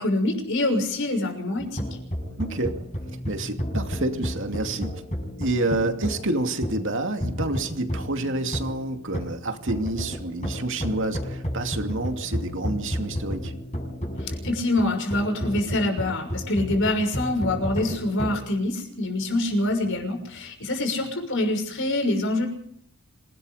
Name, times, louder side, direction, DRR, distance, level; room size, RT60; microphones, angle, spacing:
voice 1, 0.0-1.9 14.2-22.5, left 1 dB, 60° left, 4 dB, 6.3 m, -25 dB
sound 1, 1.6-18.4, equal, 30° left, 6.2 m, -32 dB
voice 2, 2.4-2.8 3.2-5.0 5.4-13.5, right 2 dB, 60° right, 6 dB, 2.6 m, -28 dB
27.0 x 18.5 x 5.1 m, 0.64 s
head